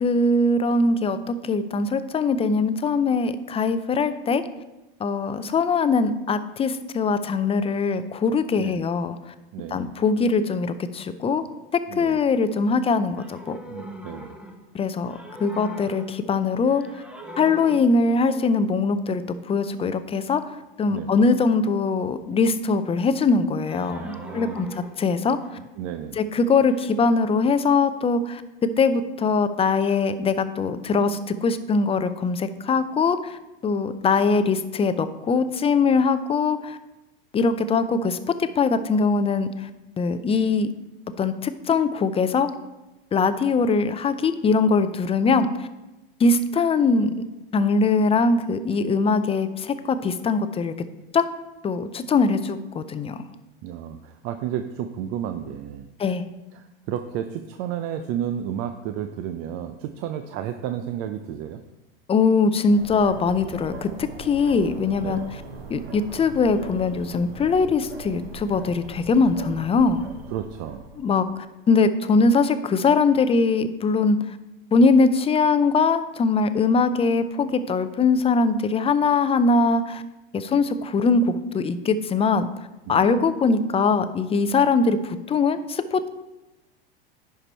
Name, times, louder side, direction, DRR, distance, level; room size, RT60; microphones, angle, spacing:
voice 1, 0.0-4.4 5.0-9.2 9.7-11.4 11.7-13.6 14.7-16.8 17.4-20.4 20.8-25.4 26.2-36.8 37.3-39.7 40.0-40.7 41.2-42.5 43.1-45.7 46.2-47.1 47.5-50.7 51.1-51.3 51.6-53.2 56.0-56.2 62.1-65.2 65.7-70.0 71.0-74.2 74.7-80.0 80.3-82.5 82.9-86.1, left 4 dB, 20° left, 11 dB, 0.5 m, -22 dB
voice 2, 9.5-9.9 11.9-12.2 13.7-14.3 20.9-21.1 23.9-24.7 25.8-26.2 53.6-55.9 56.5-61.6 65.0-65.3 70.3-70.8 82.9-83.1, right 10 dB, 50° right, 8 dB, 0.6 m, -32 dB
sound 1, 13.1-14.8 15.1-16.3 16.6-18.1 23.6-25.6 26.7-26.9, equal, 5° right, 1.0 m, -41 dB
sound 2, 62.7-71.2, right 3 dB, 85° right, 1.3 m, -40 dB
11.0 x 4.7 x 4.4 m, 1.0 s
hypercardioid pair, 95°, 29 cm